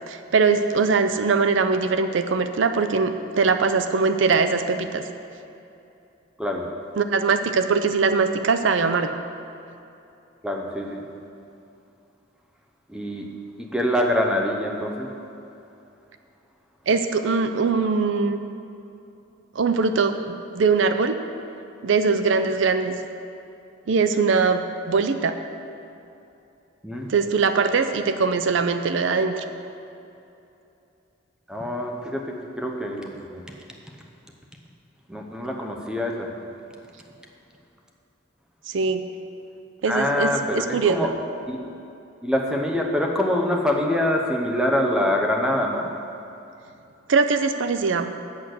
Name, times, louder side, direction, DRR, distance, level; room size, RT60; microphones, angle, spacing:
voice 1, 0.1-5.0 7.0-9.1 16.9-18.4 19.6-21.2 21.8-23.0 23.9-25.3 27.1-29.4 38.7-39.0 39.8-41.1 47.1-48.1, right 4 dB, 70° right, 9 dB, 0.5 m, -21 dB
voice 2, 10.4-11.0 12.9-13.3 13.6-15.1 26.8-27.1 31.5-33.4 35.1-36.3 39.9-41.1 41.5-41.6 42.2-45.9, left 1 dB, 5° right, 1 dB, 0.8 m, -25 dB
8.3 x 8.1 x 6.5 m, 2.8 s
head